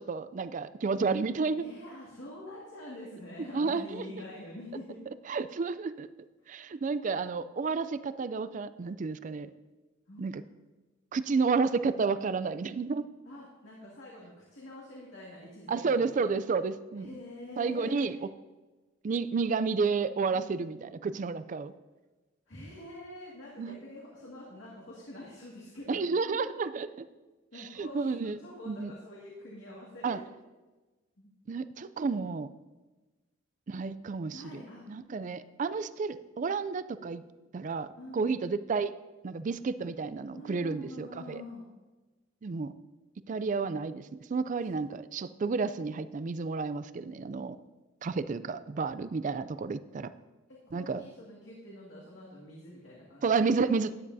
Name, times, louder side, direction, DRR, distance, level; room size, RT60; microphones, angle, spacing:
voice 1, 0.0-1.6 3.5-4.1 5.3-6.1 6.5-9.5 10.2-10.4 11.1-13.1 15.7-17.1 17.6-18.3 19.0-21.7 23.6-23.8 25.9-27.1 27.6-28.4 28.7-28.9 30.0-30.2 31.5-32.5 33.7-37.2 37.5-37.9 38.1-38.9 39.2-41.4 42.4-42.7 43.3-47.6 48.0-50.1 50.7-51.0 53.2-53.9, right 4 dB, 40° right, 14 dB, 0.4 m, -31 dB
voice 2, 1.6-5.0 6.4-6.5 10.1-10.4 13.3-16.3 16.9-18.1 20.3-20.5 22.5-26.0 27.5-30.2 31.2-31.3 34.3-34.9 38.0-38.4 40.3-41.6 50.5-53.4, left 1 dB, 75° left, -5 dB, 2.1 m, -46 dB
13.0 x 9.8 x 2.7 m, 1.2 s
head